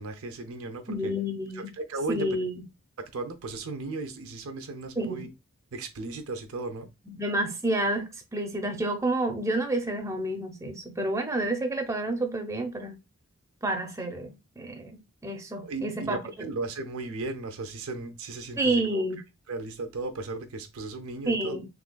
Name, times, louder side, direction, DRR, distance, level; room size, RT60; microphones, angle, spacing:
voice 1, 0.0-1.1 1.5-2.4 3.0-5.3 5.7-6.9 15.5-19.0 19.5-21.6, right 3 dB, 85° right, 0.6 m, -36 dB
voice 2, 0.9-1.7 2.1-2.6 5.0-5.2 7.1-13.0 13.6-16.5 18.6-19.2 21.3-21.7, right 1 dB, 15° right, 0.5 m, -29 dB
3.6 x 3.1 x 2.2 m
head